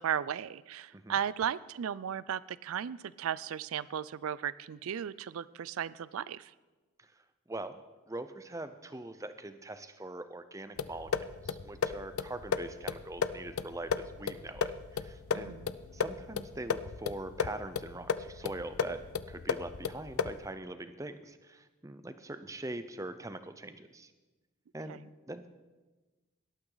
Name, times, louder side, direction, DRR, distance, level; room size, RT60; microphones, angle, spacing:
voice 1, 0.0-6.5 15.3-15.7 24.9-25.0, right 9 dB, 80° right, 19 dB, 0.4 m, -35 dB
voice 2, 7.0-7.8 8.1-15.5 15.9-24.1 24.7-25.0 25.3-25.5, right 2 dB, 15° right, 11 dB, 0.6 m, -43 dB
sound 1, 10.8-20.5, left 5 dB, 85° left, 0.5 m, -35 dB
18.0 x 12.0 x 3.9 m, 1.2 s
head